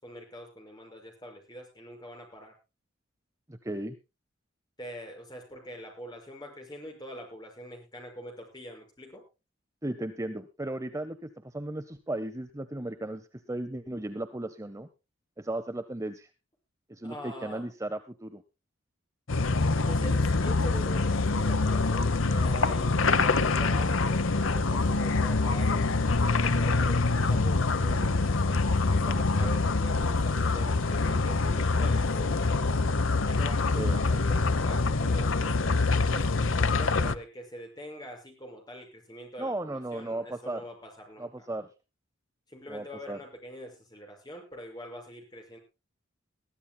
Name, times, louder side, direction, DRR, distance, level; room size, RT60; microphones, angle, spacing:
voice 1, 0.0-2.5 4.8-9.2 17.0-17.6 19.9-32.7 33.2-35.6 36.1-41.5 42.5-45.6, equal, 20° left, 3 dB, 5.9 m, -44 dB
voice 2, 3.5-4.0 9.8-14.9 15.4-16.3 16.9-18.4 33.7-34.0 39.4-40.6 41.2-41.7 42.7-43.2, right 1 dB, 15° right, 9 dB, 0.7 m, -35 dB
sound 1, 19.3-37.1, left 3 dB, 80° left, 0.9 m, -25 dB
22.0 x 14.0 x 2.2 m, 0.29 s
head